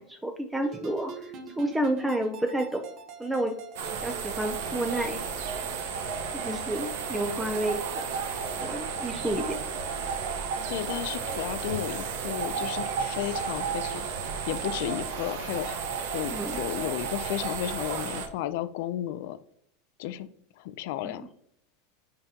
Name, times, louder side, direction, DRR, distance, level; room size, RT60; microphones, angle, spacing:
voice 1, 0.0-2.8 3.2-3.5 3.9-5.2 6.3-8.0 8.6-9.6 16.3-16.6 21.0-21.1, right 1 dB, 5° right, 4 dB, 0.5 m, -30 dB
sound 1, 0.6-5.9, right 4 dB, 40° right, 1.0 m, -45 dB
sound 2, 3.8-18.3, right 5 dB, 80° right, 1.0 m, -33 dB
voice 2, 10.7-14.1 14.5-19.4 20.0-20.3 20.6-21.2, left 13 dB, 70° left, 14 dB, 0.4 m, -33 dB
8.8 x 3.8 x 2.8 m, 0.72 s
supercardioid pair, 145°, 0 cm